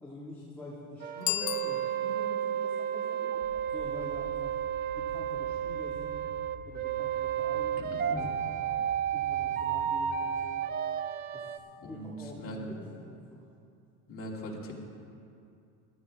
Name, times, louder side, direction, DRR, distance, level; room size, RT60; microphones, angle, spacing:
voice 1, 0.0-3.2 3.7-4.6 5.0-6.2 6.6-8.3 9.1-10.7 11.3-12.8 13.1-13.5, left 2 dB, 5° left, -8 dB, 1.8 m, -46 dB
sound 1, 1.0-11.6, right 9 dB, 25° right, 0.4 m, -32 dB
Bicycle bell, 1.2-2.4, left 15 dB, 60° left, 0.7 m, -34 dB
sound 2, 2.2-11.5, right 5 dB, 50° right, 1.2 m, -50 dB
voice 2, 7.8-8.3 11.8-12.6 14.1-14.7, equal, 30° left, -3 dB, 2.5 m, -41 dB
17.5 x 12.0 x 3.5 m, 2.5 s
supercardioid pair, 130°, 42 cm